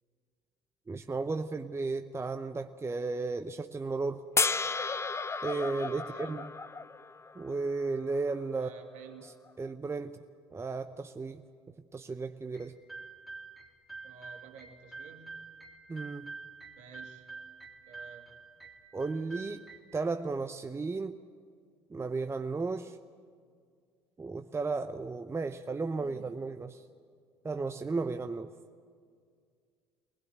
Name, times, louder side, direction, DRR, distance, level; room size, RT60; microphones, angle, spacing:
voice 1, 0.9-4.2 5.4-6.5 7.4-8.7 9.6-10.2 10.5-11.4 11.9-12.7 15.9-16.3 18.9-19.6 19.9-21.2 21.9-23.0 24.2-26.8 27.4-28.5, right 3 dB, 20° right, 8 dB, 0.7 m, -34 dB
sound 1, 4.4-7.6 9.6-9.7, left 4 dB, 20° left, 0.6 m, -32 dB
voice 2, 5.8-6.4 8.5-9.3 14.0-15.4 16.8-17.3 17.9-18.4 26.0-26.3, right 6 dB, 60° right, 4 dB, 2.3 m, -52 dB
sound 2, 12.5-19.8, right 4 dB, ahead, 2.6 m, -47 dB
21.5 x 20.0 x 8.0 m, 2.1 s
figure-of-eight pair, 55°, 13 cm